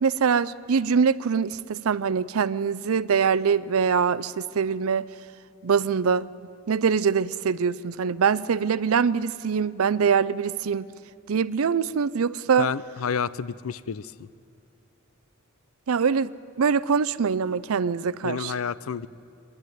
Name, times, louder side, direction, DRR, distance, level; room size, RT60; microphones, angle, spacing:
voice 1, 0.0-5.1 5.6-6.3 6.7-10.9 11.3-12.7 15.9-16.3 16.6-18.5, right 6 dB, 80° right, 16 dB, 0.5 m, -23 dB
voice 2, 12.6-14.3 18.2-19.1, left 6 dB, 75° left, 18 dB, 0.5 m, -30 dB
25.0 x 11.0 x 9.4 m, 2.5 s
head